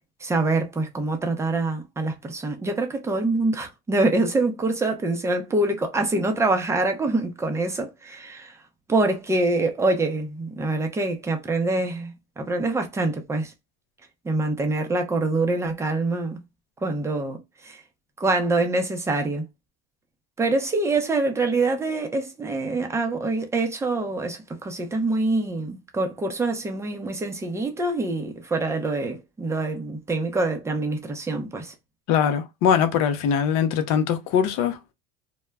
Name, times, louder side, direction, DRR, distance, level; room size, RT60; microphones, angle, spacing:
voice 1, 0.2-8.6 8.9-13.5 14.2-16.4 16.8-17.8 18.2-19.5 20.4-31.7, right 2 dB, 10° right, 0.5 m, -25 dB
voice 2, 32.1-34.9, left 8 dB, 60° left, 0.6 m, -22 dB
2.2 x 2.0 x 3.3 m
supercardioid pair, 110°, 30 cm